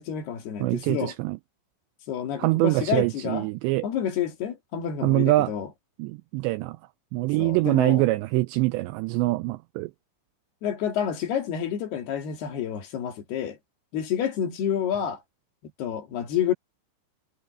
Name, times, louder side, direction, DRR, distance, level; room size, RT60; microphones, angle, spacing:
voice 1, 0.0-1.1 2.1-3.5 3.8-5.7 7.4-8.1 10.6-13.6 13.9-15.2 15.8-16.5, left 9 dB, 60° left, 4.0 m, -29 dB
voice 2, 0.6-1.4 2.4-3.9 5.0-5.5 6.0-6.8 7.1-9.9, right 20 dB, 85° right, 2.5 m, -24 dB
omnidirectional pair, 5.5 m